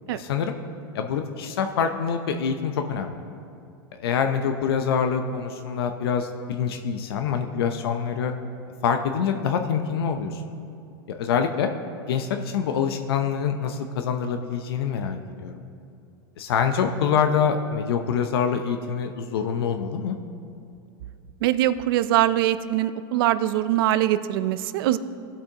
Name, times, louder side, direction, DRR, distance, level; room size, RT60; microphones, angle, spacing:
voice 1, 0.1-0.6 0.9-3.1 4.0-8.3 8.8-10.4 11.1-11.7 12.1-15.6 16.4-20.2, left 7 dB, 80° left, 6 dB, 0.7 m, -25 dB
voice 2, 21.4-25.0, right 13 dB, 70° right, 14 dB, 0.5 m, -22 dB
17.0 x 8.3 x 2.9 m, 2.5 s
supercardioid pair, 125°, 13 cm